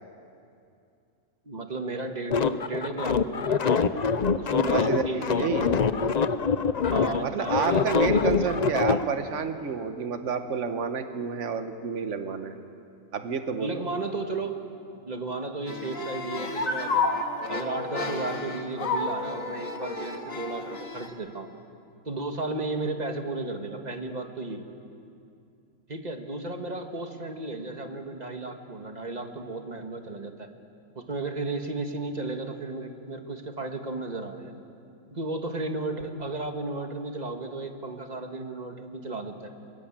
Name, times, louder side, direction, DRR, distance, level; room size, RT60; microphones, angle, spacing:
voice 1, 1.4-3.9 4.3-5.5 6.8-9.0 13.6-14.6 15.0-17.1 17.5-21.5 22.0-24.7 25.9-30.5 30.9-34.5 35.1-39.5, right 2 dB, 30° right, 4 dB, 1.8 m, -34 dB
sound 1, 2.3-9.0, left 6 dB, 40° left, 0.7 m, -24 dB
voice 2, 4.7-5.7 7.2-12.6 13.1-13.8, right 6 dB, 65° right, 8 dB, 1.5 m, -29 dB
sound 2, 15.7-21.1, left 3 dB, 80° left, 2.2 m, -31 dB
23.0 x 22.5 x 8.9 m, 2.5 s
omnidirectional pair, 1.4 m